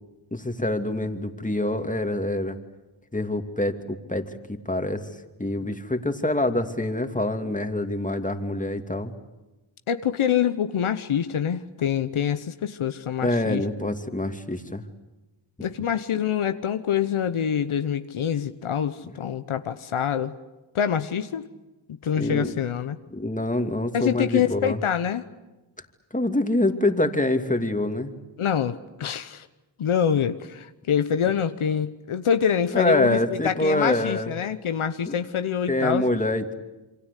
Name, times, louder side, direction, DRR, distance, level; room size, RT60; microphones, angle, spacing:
voice 1, 0.3-2.6 3.1-5.0 5.4-9.1 13.2-14.8 22.2-22.5 23.1-24.8 26.1-28.1 32.7-34.3 35.1-35.2 35.7-36.5, left 1 dB, 15° left, 6 dB, 2.6 m, -25 dB
voice 2, 9.9-13.6 15.6-20.3 20.7-21.5 22.0-23.0 23.9-25.2 28.4-29.5 29.8-36.1, left 8 dB, 80° left, 10 dB, 1.1 m, -25 dB
27.5 x 24.0 x 8.3 m, 1.1 s
cardioid pair, 40°, 49 cm